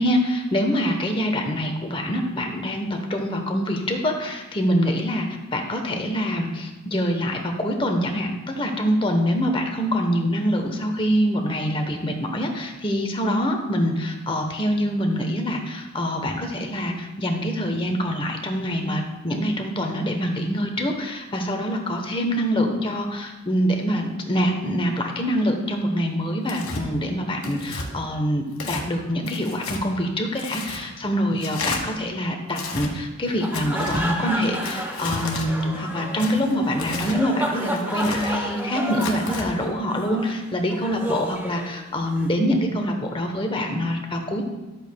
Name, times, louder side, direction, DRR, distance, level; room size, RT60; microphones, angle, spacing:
voice 1, 0.0-5.3 5.5-44.4, equal, 25° left, 3 dB, 0.9 m, -25 dB
Tearing, 26.5-26.8 27.4-27.9 28.5-28.8 29.3-29.8 30.4-30.8 31.4-31.8 32.5-32.9 33.5-34.0 34.6-35.5 36.2-37.2 37.7-38.3 38.9-39.5, left 3 dB, 80° left, 1.4 m, -32 dB
sound 1, 33.2-42.3, right 1 dB, 10° right, 0.8 m, -31 dB
12.5 x 8.0 x 2.2 m, 1.0 s
head